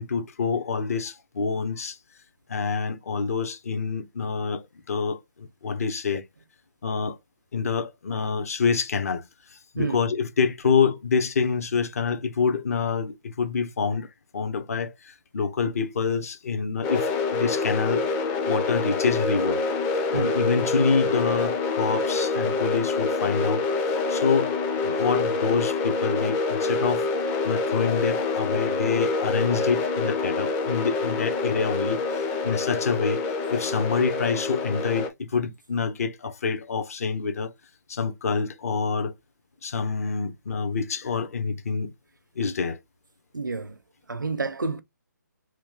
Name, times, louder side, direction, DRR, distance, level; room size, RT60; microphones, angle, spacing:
voice 1, 0.0-2.0 2.5-6.2 6.8-7.2 7.5-9.2 9.5-14.1 14.3-18.1 18.5-19.7 20.1-24.5 24.8-27.1 27.4-32.0 32.4-33.2 33.5-37.5 37.9-39.1 39.6-41.9 42.4-42.8, left 5 dB, 50° left, 0.8 m, -26 dB
sound 1, 16.8-35.1, left 3 dB, 15° left, 0.4 m, -26 dB
voice 2, 43.3-43.8 44.1-44.8, right 4 dB, 85° right, 0.5 m, -29 dB
3.0 x 2.3 x 3.6 m
figure-of-eight pair, 145°, 10 cm